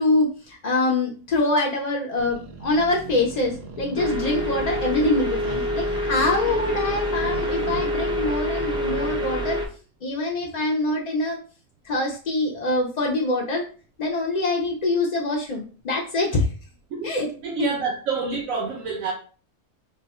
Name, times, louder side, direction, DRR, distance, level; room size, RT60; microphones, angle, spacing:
voice 1, 0.0-9.6 10.0-11.4 11.8-13.6 14.0-16.5 17.0-17.3, left 2 dB, 55° left, -1 dB, 0.5 m, -24 dB
sound 1, 2.2-9.4, right 3 dB, 60° right, 0.5 m, -40 dB
sound 2, 4.0-9.7, left 1 dB, 5° right, 0.4 m, -26 dB
voice 2, 17.4-19.1, right 4 dB, 85° right, -2 dB, 1.2 m, -28 dB
3.4 x 2.2 x 4.1 m, 0.38 s
omnidirectional pair, 1.4 m